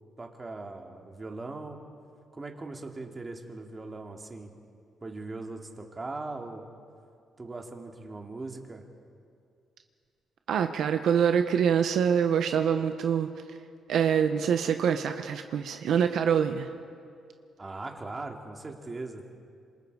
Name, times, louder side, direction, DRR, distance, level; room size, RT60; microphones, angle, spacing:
voice 1, 0.2-1.8 2.3-4.5 5.0-6.7 7.4-8.8 17.6-19.3, right 3 dB, 25° right, 2 dB, 2.5 m, -40 dB
voice 2, 10.5-13.3 13.9-16.7, right 8 dB, 75° right, 7 dB, 1.0 m, -25 dB
27.0 x 27.0 x 4.9 m, 2.3 s
cardioid pair, 110°, 0 cm